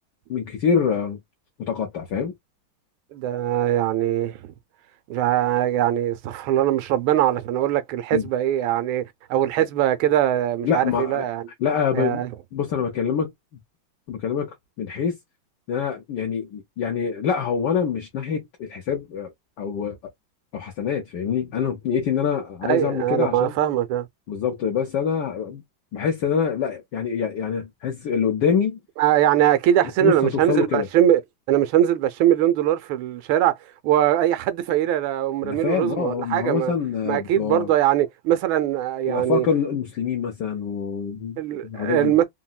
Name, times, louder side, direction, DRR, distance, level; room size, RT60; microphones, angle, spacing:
voice 1, 0.3-1.2 1.6-2.3 8.1-8.3 10.6-11.2 11.6-12.2 12.5-13.3 14.1-15.2 15.7-19.3 19.6-20.0 20.5-23.5 24.3-25.6 25.9-28.8 30.0-30.9 35.4-37.7 39.1-42.1, left 7 dB, 65° left, 1.3 m, -25 dB
voice 2, 3.1-4.5 5.1-9.0 9.3-11.4 11.9-12.3 22.7-24.1 29.0-31.2 31.5-33.5 33.8-36.7 37.1-39.5 41.4-42.2, right 12 dB, 85° right, 1.4 m, -21 dB
3.9 x 2.1 x 2.3 m
omnidirectional pair, 2.2 m